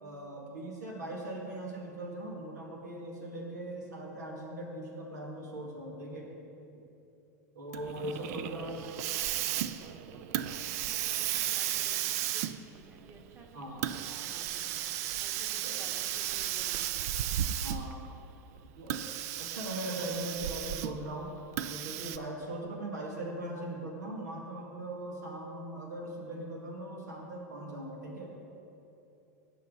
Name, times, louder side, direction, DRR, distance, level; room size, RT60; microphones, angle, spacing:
voice 1, 0.0-6.3 7.6-8.8 13.5-13.8 15.6-15.8 17.6-18.0 18.6-21.3 21.7-28.3, right 1 dB, 90° right, -1 dB, 2.3 m, -40 dB
Hiss, 7.7-18.1 18.8-21.1 21.6-22.2, right 11 dB, 65° right, 0.4 m, -34 dB
voice 2, 8.0-9.5 9.8-17.3, right 2 dB, 30° right, 1 dB, 1.9 m, -54 dB
17.5 x 6.1 x 4.0 m, 2.8 s
hypercardioid pair, 95°, 9 cm